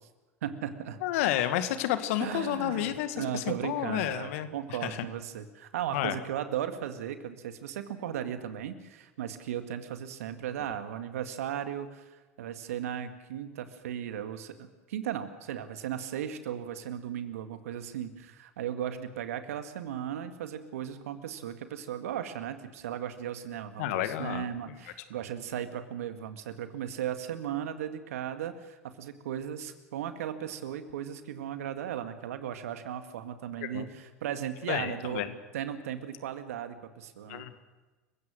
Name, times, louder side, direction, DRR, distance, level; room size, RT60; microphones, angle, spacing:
voice 1, 0.4-1.0 2.2-35.3 35.5-37.5, right 10 dB, 70° right, 8 dB, 1.9 m, -36 dB
voice 2, 1.0-4.5 4.8-5.1 5.9-6.2 23.8-24.5 33.6-33.9 34.7-35.3 37.3-37.5, left 12 dB, 65° left, 10 dB, 1.9 m, -30 dB
29.0 x 16.0 x 6.4 m, 1.2 s
hypercardioid pair, 85°, 8 cm